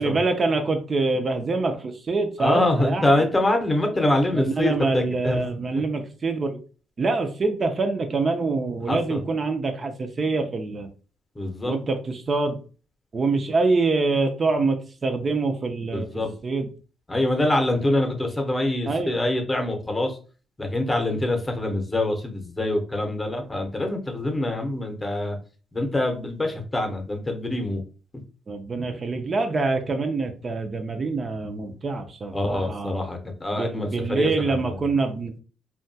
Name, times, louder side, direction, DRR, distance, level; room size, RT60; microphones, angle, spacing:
voice 1, 0.0-3.1 4.3-6.6 7.0-10.9 11.7-12.6 13.1-16.7 18.9-19.2 28.5-32.9 33.5-35.3, right 3 dB, 40° right, 5 dB, 0.4 m, -25 dB
voice 2, 2.4-5.4 8.9-9.2 11.3-11.8 15.9-16.3 17.1-20.2 20.6-25.4 25.7-27.8 32.3-34.7, left 1 dB, 20° left, 4 dB, 0.7 m, -25 dB
2.7 x 2.2 x 2.6 m, 0.36 s
cardioid pair, 90°, 0 cm